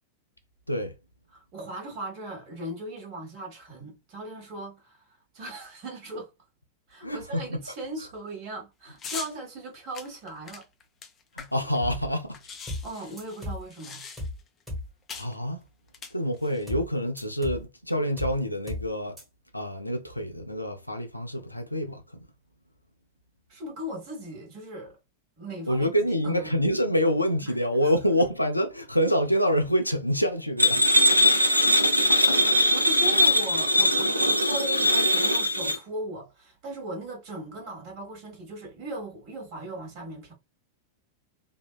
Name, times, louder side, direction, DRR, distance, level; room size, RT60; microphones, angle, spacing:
voice 1, 1.3-6.3 6.9-10.6 12.8-14.0 23.5-25.0 25.4-26.6 27.4-27.5 27.8-27.9 31.5-31.8 32.2-40.3, right 1 dB, 40° right, 1.2 m, -38 dB
voice 2, 7.0-7.6 11.4-12.4 15.1-15.6 16.1-19.2 19.5-22.0 25.7-30.8, equal, 90° left, 0.4 m, -26 dB
sound 1, 9.0-9.3 9.9-11.8 12.0-12.1 12.3-14.5 15.1-15.3 15.9-16.6, left 5 dB, 25° left, 0.5 m, -41 dB
sound 2, 12.7-12.9 13.2-13.7 14.2-14.4 14.7-14.9 16.7-16.9 17.2-17.7 18.2-18.4 18.7-18.9 19.2-19.3, left 1 dB, 5° right, 1.1 m, -35 dB
sound 3, 30.6-35.8, left 1 dB, 85° right, 0.4 m, -21 dB
2.7 x 2.1 x 2.3 m
figure-of-eight pair, 90°, 0 cm